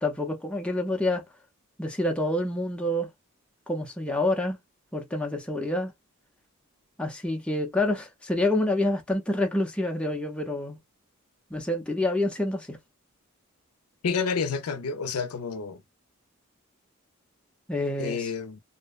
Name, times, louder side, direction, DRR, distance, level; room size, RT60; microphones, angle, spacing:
voice 1, 0.0-1.2 1.8-3.1 3.7-4.6 4.9-5.9 7.0-10.8 11.5-12.8 17.7-18.3, left 1 dB, 5° left, 0.5 m, -27 dB
voice 2, 14.0-15.8 18.0-18.6, left 5 dB, 85° left, 0.5 m, -29 dB
2.7 x 2.1 x 2.3 m
head